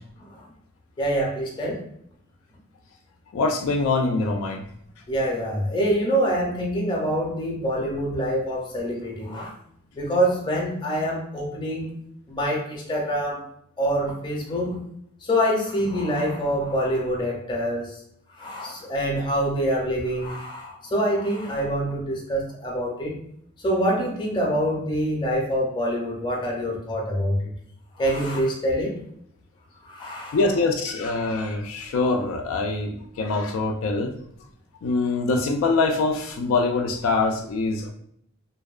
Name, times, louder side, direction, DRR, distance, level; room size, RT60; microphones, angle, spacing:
voice 1, 1.0-1.8 5.1-9.5 9.9-11.9 12.3-13.4 13.8-14.9 15.2-18.0 18.3-23.1 23.6-27.5 27.9-29.0 29.8-30.4, equal, 20° left, -2 dB, 0.5 m, -25 dB
voice 2, 3.3-4.7 30.3-34.1 34.8-37.9, left 3 dB, 75° left, 4 dB, 0.3 m, -24 dB
2.7 x 2.1 x 2.3 m, 0.69 s
head